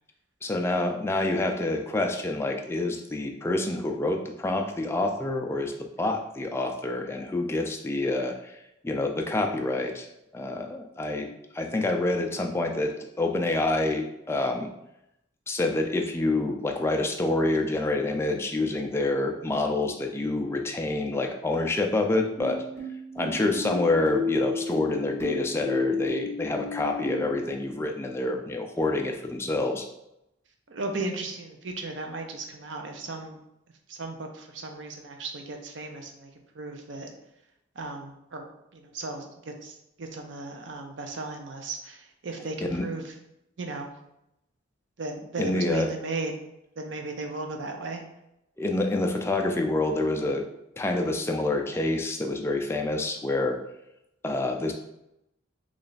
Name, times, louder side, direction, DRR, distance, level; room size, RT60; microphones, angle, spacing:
voice 1, 0.4-8.5 8.8-10.1 10.3-11.3 11.5-14.7 15.5-22.6 23.2-29.9 42.7-42.9 45.4-45.9 48.6-50.4 50.8-53.6 54.2-54.7, left 2 dB, 15° left, 3 dB, 0.3 m, -27 dB
sound 1, 22.4-27.5, left 3 dB, 15° right, 1.3 m, -32 dB
voice 2, 30.7-33.4 33.9-36.3 36.6-37.1 37.8-38.5 38.7-43.1 43.6-43.9 45.0-46.3 46.8-48.0, right 3 dB, 65° right, 4 dB, 0.6 m, -36 dB
3.2 x 2.3 x 3.9 m, 0.84 s
head